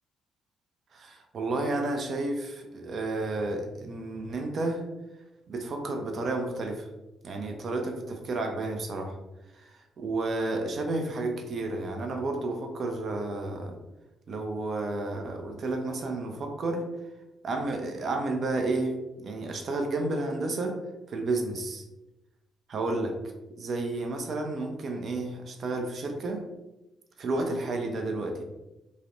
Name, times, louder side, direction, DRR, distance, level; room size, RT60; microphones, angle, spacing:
voice 1, 0.9-4.8 5.5-6.9 7.2-9.2 9.5-13.8 14.3-16.9 17.4-20.8 21.1-21.8 22.7-23.2 23.5-26.4 27.2-28.4, right 2 dB, 55° right, 4 dB, 0.4 m, -31 dB
2.4 x 2.0 x 2.6 m, 1.0 s
hypercardioid pair, 45°, 0 cm